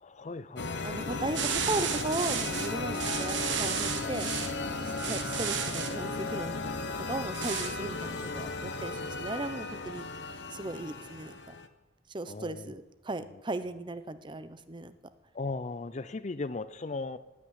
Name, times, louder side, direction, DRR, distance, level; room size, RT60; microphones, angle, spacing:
voice 1, 0.0-0.7 5.0-5.2 12.3-12.7 15.3-17.2, left 3 dB, 35° left, 14 dB, 0.5 m, -37 dB
sound 1, 0.6-11.7, left 3 dB, 60° left, 1.0 m, -35 dB
voice 2, 0.8-4.3 4.7-10.1 10.5-11.4 12.1-15.0, right 2 dB, 25° right, 12 dB, 0.7 m, -37 dB
sound 2, 1.3-4.5 5.0-5.9 7.3-7.7, right 8 dB, 65° right, 1.4 m, -33 dB
17.0 x 6.1 x 9.8 m, 1.1 s
head